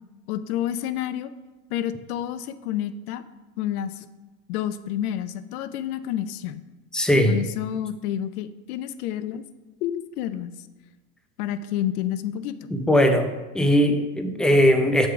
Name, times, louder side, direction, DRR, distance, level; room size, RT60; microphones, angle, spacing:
voice 1, 0.3-1.3 1.7-3.2 3.6-4.1 4.5-6.6 7.3-9.4 9.8-10.7 11.4-12.7, left 11 dB, 85° left, 13 dB, 0.6 m, -29 dB
voice 2, 6.9-7.4 12.7-13.3 13.5-15.1, equal, ahead, 6 dB, 0.6 m, -19 dB
8.0 x 3.9 x 5.8 m, 1.2 s
supercardioid pair, 100°, 43 cm